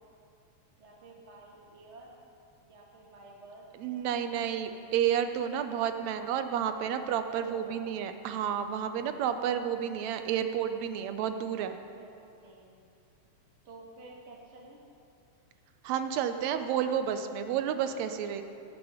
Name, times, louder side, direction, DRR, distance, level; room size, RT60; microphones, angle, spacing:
voice 1, 0.8-2.2 2.6-4.9 7.4-7.9 12.0-12.8 13.6-14.8, right 2 dB, 30° right, -2 dB, 1.4 m, -52 dB
voice 2, 3.8-11.8 15.8-18.4, right 9 dB, 75° right, 8 dB, 1.9 m, -31 dB
18.5 x 7.9 x 5.7 m, 2.5 s
omnidirectional pair, 3.3 m